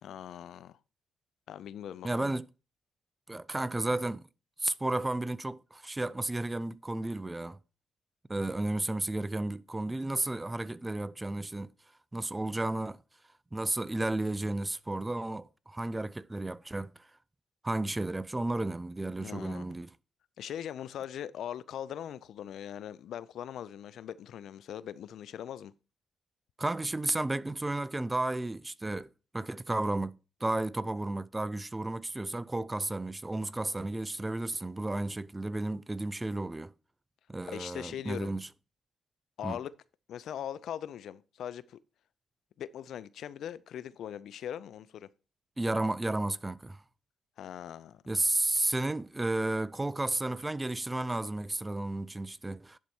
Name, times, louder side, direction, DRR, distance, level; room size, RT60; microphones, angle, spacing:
voice 1, 0.0-0.8 1.5-2.3 19.2-19.8 20.4-25.7 37.5-38.3 39.4-39.7 40.1-41.8 42.6-45.1 47.4-48.0, left 10 dB, 70° left, 0.4 m, -41 dB
voice 2, 2.0-2.5 3.3-4.3 4.6-7.6 8.3-11.7 12.1-13.0 13.5-16.9 17.6-19.9 26.6-29.1 29.3-36.7 37.3-38.5 39.4-39.6 45.6-46.8 48.1-52.8, right 2 dB, 15° right, 0.4 m, -33 dB
11.0 x 4.5 x 4.4 m
supercardioid pair, 65°, 0 cm